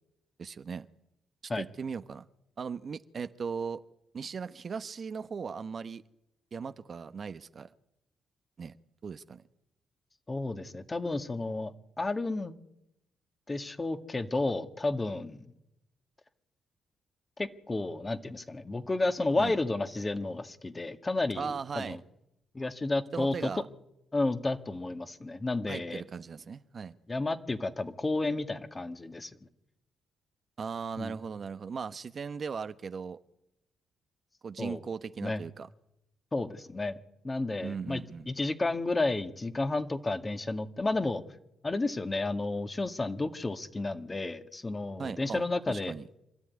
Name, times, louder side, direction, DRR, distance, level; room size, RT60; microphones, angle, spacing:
voice 1, 0.4-0.9 1.6-2.3 2.6-3.8 4.1-6.0 6.5-7.7 8.6-8.8 9.0-9.4 19.4-19.5 21.4-22.0 23.1-23.6 25.7-27.0 30.6-33.2 34.4-35.7 37.6-38.3 45.0-46.0, right 6 dB, 50° right, 1.0 m, -38 dB
voice 2, 10.3-12.5 13.5-15.4 17.4-22.0 22.5-23.5 24.1-26.0 27.1-29.3 31.0-31.2 34.6-34.8 35.2-35.4 36.3-37.0 37.2-38.0 38.3-41.2 41.6-45.9, left 2 dB, 30° left, 2.0 m, -32 dB
25.5 x 13.0 x 9.6 m
supercardioid pair, 55°, 0 cm